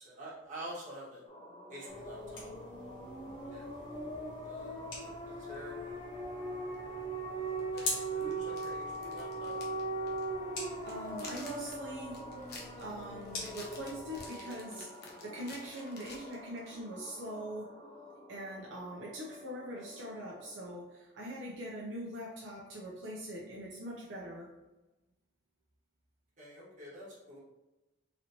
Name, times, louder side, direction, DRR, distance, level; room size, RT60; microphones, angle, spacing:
voice 1, 0.0-1.2 1.7-2.5 3.5-3.7 4.4-4.9 5.2-6.0 7.7-9.6 26.4-27.4, equal, 45° right, -6 dB, 1.3 m, -47 dB
sound 1, 1.3-20.7, right 2 dB, 30° left, 0.6 m, -42 dB
sound 2, 1.9-14.3, left 2 dB, 85° left, 1.4 m, -46 dB
sound 3, 6.7-6.8 7.6-9.8 10.1-10.2 10.6-16.7, left 3 dB, 60° left, 0.9 m, -51 dB
voice 2, 10.9-12.2 12.8-17.7 18.3-24.5, right 1 dB, 75° right, -5 dB, 0.7 m, -42 dB
4.0 x 3.0 x 2.8 m, 1.0 s
head